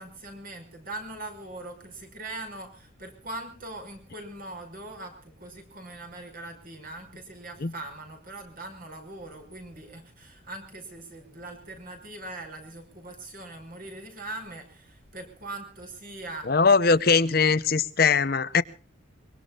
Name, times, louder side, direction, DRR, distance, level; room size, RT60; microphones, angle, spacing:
voice 1, 0.0-16.6, right 2 dB, 45° right, 5.6 m, -41 dB
voice 2, 16.5-18.6, left 5 dB, 45° left, 0.7 m, -21 dB
24.0 x 22.5 x 2.4 m
head